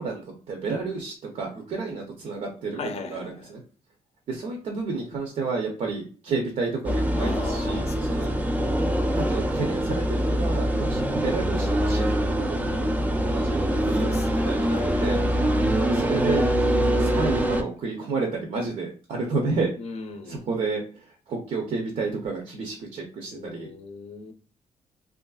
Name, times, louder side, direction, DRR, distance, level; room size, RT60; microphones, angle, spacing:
voice 1, 0.0-3.2 3.5-3.6 4.3-8.3 9.1-15.2 15.6-16.5 16.8-19.7 20.3-20.8 21.3-23.7, right 4 dB, 65° right, 0.6 m, -31 dB
voice 2, 2.7-3.5 7.2-8.6 13.9-15.2 19.8-20.5 23.3-24.3, left 4 dB, 55° left, 0.5 m, -38 dB
sound 1, 6.8-17.6, equal, 10° right, 0.3 m, -24 dB
3.1 x 2.5 x 2.3 m
cardioid pair, 135°, 13 cm